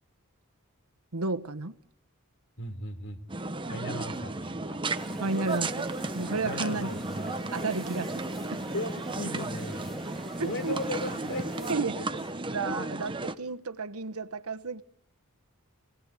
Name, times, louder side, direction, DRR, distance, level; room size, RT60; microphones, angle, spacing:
voice 1, 1.1-1.7 5.2-5.9 6.1-6.9 7.5-8.6 10.4-10.8 11.7-12.0 12.5-14.8, right 3 dB, 80° right, 1.3 m, -32 dB
voice 2, 2.6-3.2 3.7-4.8 6.4-7.3 8.7-10.0 10.4-12.1, left 1 dB, 55° left, 3.6 m, -37 dB
sound 1, 3.3-13.4, right 2 dB, 25° right, 1.0 m, -34 dB
sound 2, 4.9-11.7, equal, ahead, 1.8 m, -43 dB
27.5 x 18.0 x 9.8 m
head